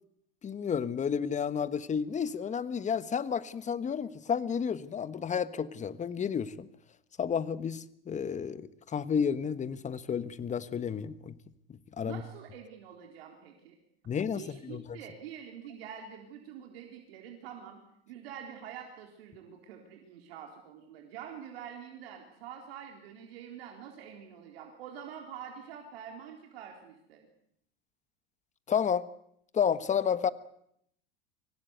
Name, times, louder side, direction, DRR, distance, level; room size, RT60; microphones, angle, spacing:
voice 1, 0.4-6.7 7.2-11.3 12.0-12.2 14.1-15.0 28.7-29.1 29.5-30.3, left 7 dB, 25° left, 14 dB, 1.3 m, -31 dB
voice 2, 12.0-13.8 14.3-17.8 18.1-27.2, right 8 dB, 70° right, 2 dB, 3.9 m, -46 dB
25.0 x 18.0 x 8.2 m, 0.73 s
hypercardioid pair, 95°, 30 cm